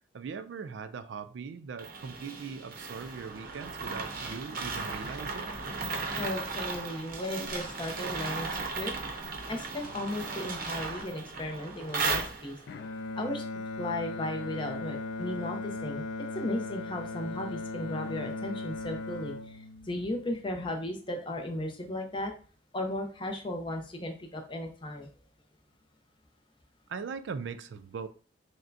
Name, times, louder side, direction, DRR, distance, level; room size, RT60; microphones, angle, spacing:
voice 1, 0.1-5.6 26.9-28.1, right 5 dB, 75° right, 0.4 m, -40 dB
sound 1, 1.8-12.8, right 4 dB, 50° right, 0.7 m, -36 dB
voice 2, 6.2-8.9 9.5-12.6 13.2-13.5 13.8-16.1 16.3-22.3 22.7-25.1, left 1 dB, 25° left, 0.7 m, -35 dB
Bowed string instrument, 12.7-20.9, left 3 dB, 75° left, 0.4 m, -38 dB
6.1 x 2.2 x 2.6 m
head